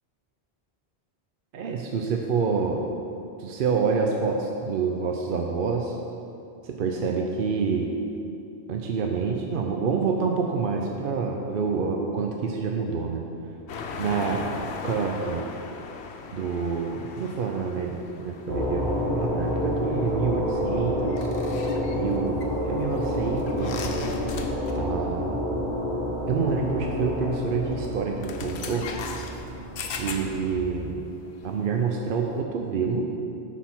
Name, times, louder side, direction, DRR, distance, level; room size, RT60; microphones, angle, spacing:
voice 1, 1.5-2.9 3.4-6.0 6.6-7.9 8.7-13.2 14.0-15.4 16.3-21.3 21.9-23.9 24.8-25.4 26.3-28.9 30.0-31.1 31.4-33.1, right 5 dB, 60° right, 1 dB, 0.7 m, -27 dB
sound 1, 13.7-25.0 25.2-25.5 26.6-26.7 27.7-27.9 28.2-32.4, left 5 dB, 75° left, 0.9 m, -39 dB
sound 2, 18.5-30.5, equal, 75° right, 1.8 m, -29 dB
10.0 x 4.1 x 6.0 m, 2.6 s
omnidirectional pair, 1.1 m